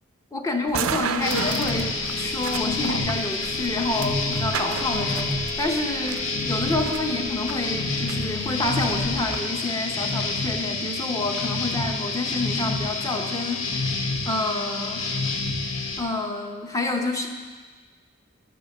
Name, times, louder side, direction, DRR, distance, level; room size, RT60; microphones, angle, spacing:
voice 1, 0.3-13.9 14.2-15.0 16.0-17.3, left 2 dB, 15° left, 3 dB, 0.9 m, -28 dB
sound 1, 0.7-9.4, right 6 dB, 75° right, 0.5 m, -34 dB
sound 2, 1.2-16.0, left 3 dB, 65° left, 1.0 m, -28 dB
12.0 x 5.5 x 6.6 m, 1.4 s
head